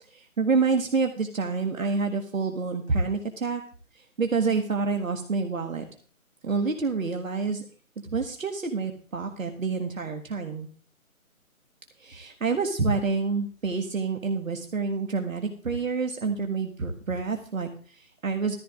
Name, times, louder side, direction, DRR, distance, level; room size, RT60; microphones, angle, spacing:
voice 1, 0.1-3.6 3.9-5.8 6.4-7.6 8.0-10.7 12.0-18.6, right 4 dB, 65° right, 4 dB, 1.6 m, -28 dB
15.5 x 14.0 x 2.5 m, 0.43 s
hypercardioid pair, 180°, 43 cm